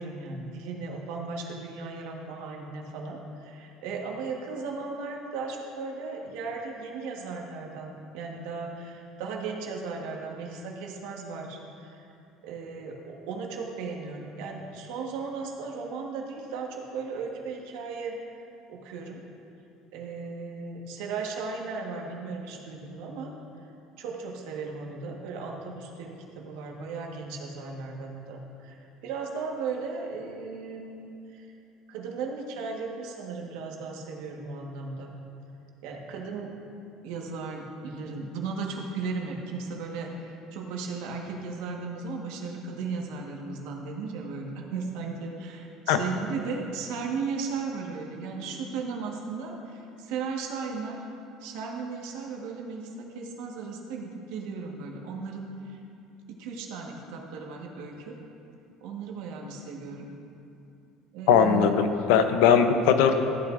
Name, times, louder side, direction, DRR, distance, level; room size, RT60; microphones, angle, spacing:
voice 1, 0.0-12.1 12.4-18.2 18.7-19.2 19.9-23.3 24.0-31.5 31.9-35.1 35.8-36.5 37.0-51.0 51.4-55.8 56.3-58.2 58.8-60.1 61.1-61.7, right 4 dB, 80° right, 0 dB, 1.4 m, -36 dB
voice 2, 61.3-63.1, left 7 dB, 85° left, 7 dB, 0.7 m, -20 dB
13.5 x 8.8 x 2.6 m, 2.7 s
cardioid pair, 145°, 0 cm